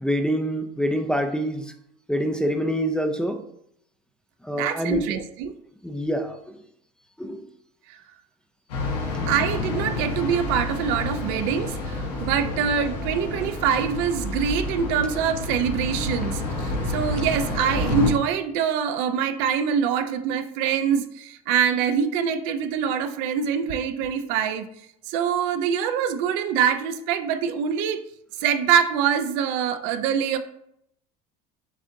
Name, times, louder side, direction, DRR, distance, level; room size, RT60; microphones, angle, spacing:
voice 1, 0.0-1.7 2.1-3.4 4.4-5.2 5.8-6.6 7.2-7.4, equal, 5° left, 6 dB, 0.4 m, -26 dB
voice 2, 4.6-5.5 7.9-8.0 9.3-24.7 25.1-28.0 28.4-30.4, right 7 dB, 65° right, 9 dB, 0.5 m, -24 dB
sound 1, 8.7-18.1, left 2 dB, 85° left, 1.5 m, -29 dB
7.3 x 2.5 x 2.6 m, 0.74 s
hypercardioid pair, 90°, 21 cm